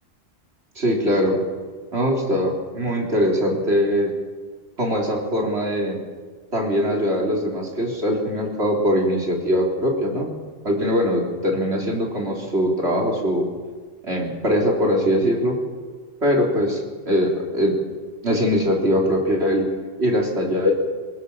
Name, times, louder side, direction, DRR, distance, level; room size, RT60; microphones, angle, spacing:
voice 1, 0.8-1.4 1.9-4.1 4.8-6.0 6.5-10.3 10.6-13.5 14.0-15.6 16.2-16.8 17.1-17.8 18.2-19.7 20.0-20.7, equal, 70° right, -1 dB, 4.2 m, -21 dB
23.5 x 20.0 x 7.3 m, 1.5 s
omnidirectional pair, 1.2 m